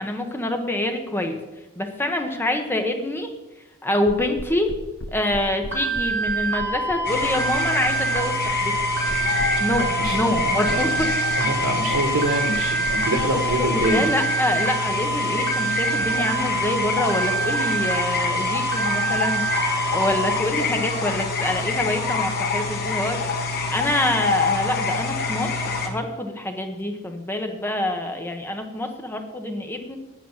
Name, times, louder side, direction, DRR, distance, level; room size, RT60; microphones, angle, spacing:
voice 1, 0.0-1.4 1.8-3.3 3.8-4.7 5.1-8.8 9.6-11.1 13.3-19.5 19.9-25.5 25.8-30.0, left 1 dB, 10° left, 5 dB, 1.2 m, -26 dB
sound 1, 4.1-13.9, left 1 dB, 75° left, 1.2 m, -35 dB
sound 2, 5.7-20.3, right 3 dB, 60° right, 2.7 m, -26 dB
sound 3, 7.0-25.9, left 4 dB, 50° left, 1.8 m, -26 dB
voice 2, 10.0-10.8 11.4-14.1, right 1 dB, 90° right, 2 dB, 1.4 m, -25 dB
9.0 x 9.0 x 7.4 m, 1.0 s
head